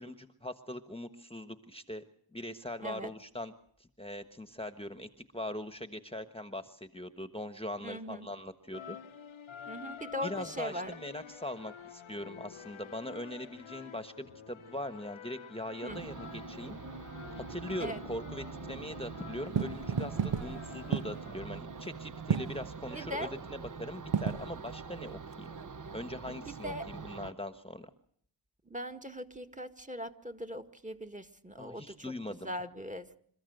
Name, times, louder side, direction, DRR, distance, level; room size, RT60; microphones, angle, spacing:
voice 1, 0.0-2.0 2.3-3.5 3.8-5.1 5.3-9.0 10.2-16.8 17.4-25.5 25.9-27.9 31.6-32.5, left 1 dB, 10° left, 8 dB, 1.3 m, -41 dB
voice 2, 2.8-3.1 7.8-8.3 9.7-10.9 15.8-16.0 17.8-18.0 22.9-23.3 26.3-26.9 28.7-32.1 32.4-33.2, equal, 15° right, 5 dB, 1.8 m, -40 dB
sound 1, 8.7-21.5, left 8 dB, 85° left, 1.0 m, -49 dB
sound 2, 15.9-27.3, right 4 dB, 40° right, 1.0 m, -44 dB
sound 3, 19.4-26.0, right 7 dB, 70° right, 1.1 m, -35 dB
27.5 x 14.0 x 7.9 m, 0.64 s
cardioid pair, 45°, 46 cm